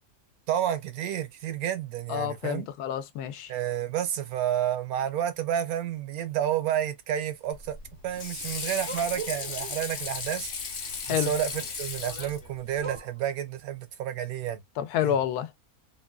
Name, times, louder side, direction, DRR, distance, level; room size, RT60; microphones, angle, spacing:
voice 1, 0.5-2.7 3.5-7.8 8.0-10.5 11.1-14.6 15.0-15.2, right 10 dB, 75° right, 1.1 m, -30 dB
voice 2, 2.1-3.5 11.1-11.3 14.8-15.5, left 10 dB, 80° left, 1.1 m, -28 dB
Water / Sink (filling or washing), 7.5-13.0, left 5 dB, 45° left, 0.7 m, -36 dB
sound 1, 8.8-10.0 12.7-13.3, right 5 dB, 40° right, 0.5 m, -40 dB
3.8 x 2.2 x 2.3 m
omnidirectional pair, 1.6 m